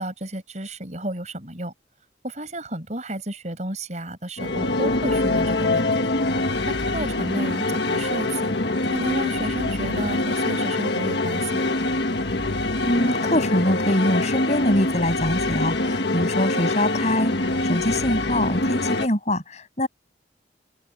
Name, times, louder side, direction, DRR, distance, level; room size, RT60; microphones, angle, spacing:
voice 1, 0.0-1.7 2.2-5.9 6.7-8.5 8.9-11.7 16.5-16.6, right 1 dB, 40° right, 6.8 m, -32 dB
Railway Voyage Emergensea, 4.4-19.1, left 2 dB, 65° left, 1.8 m, -24 dB
voice 2, 12.8-17.3 17.6-19.9, left 1 dB, 40° left, 7.8 m, -23 dB
open air
head